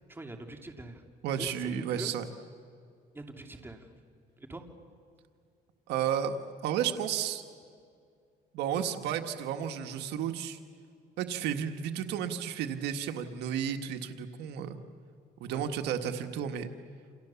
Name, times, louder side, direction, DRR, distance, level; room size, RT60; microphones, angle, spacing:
voice 1, 0.1-1.0 1.4-2.1 3.1-3.9 4.4-4.7 15.4-15.6, right 2 dB, 15° right, 3 dB, 2.8 m, -43 dB
voice 2, 1.2-2.3 5.9-6.3 6.6-7.4 8.5-10.6 11.2-14.8 15.4-16.7, right 9 dB, 85° right, 6 dB, 1.6 m, -32 dB
29.5 x 28.0 x 7.1 m, 2.2 s
cardioid pair, 110°, 17 cm